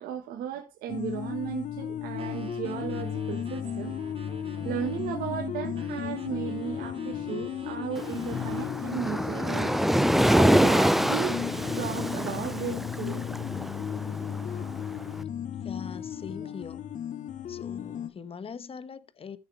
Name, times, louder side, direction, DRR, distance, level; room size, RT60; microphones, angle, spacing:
voice 1, 0.0-4.0 4.6-9.7 10.3-11.4 11.8-13.2 16.4-16.5, right 9 dB, 80° right, 1.4 m, -35 dB
sound 1, 0.9-18.1, left 9 dB, 55° left, 0.9 m, -35 dB
sound 2, 2.2-5.2 5.7-8.7 9.3-12.8, right 4 dB, 35° right, 3.7 m, -46 dB
Waves surf, 8.0-15.1, equal, ahead, 0.4 m, -26 dB
voice 2, 15.6-16.9 17.5-19.4, left 5 dB, 40° left, 1.0 m, -42 dB
13.5 x 6.5 x 3.3 m
cardioid pair, 85°, 15 cm